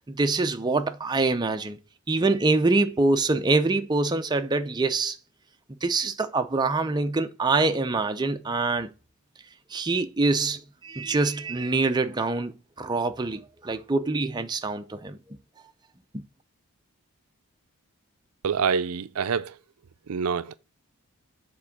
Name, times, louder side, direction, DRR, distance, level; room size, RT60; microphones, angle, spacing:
voice 1, 0.1-1.8 2.1-5.2 5.8-8.9 9.7-12.5 12.8-15.2, right 3 dB, 20° right, 0.6 m, -25 dB
voice 2, 18.4-19.6 20.1-20.6, right 6 dB, 80° right, 0.5 m, -26 dB
7.5 x 3.7 x 5.8 m
head